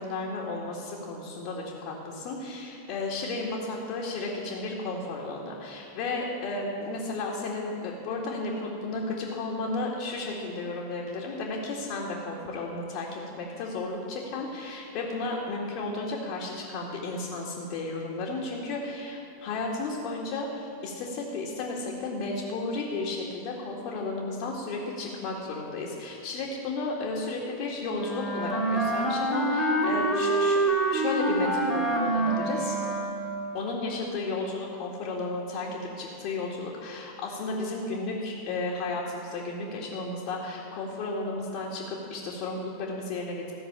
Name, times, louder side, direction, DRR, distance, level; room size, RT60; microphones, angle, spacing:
voice 1, 0.0-30.6 30.9-32.8 33.5-43.5, left 3 dB, 45° left, -4 dB, 2.1 m, -33 dB
Wind instrument woodwind instrument, 27.9-33.4, right 2 dB, 10° left, 2.2 m, -26 dB
15.0 x 6.7 x 8.7 m, 2.5 s
figure-of-eight pair, 90°, 0 cm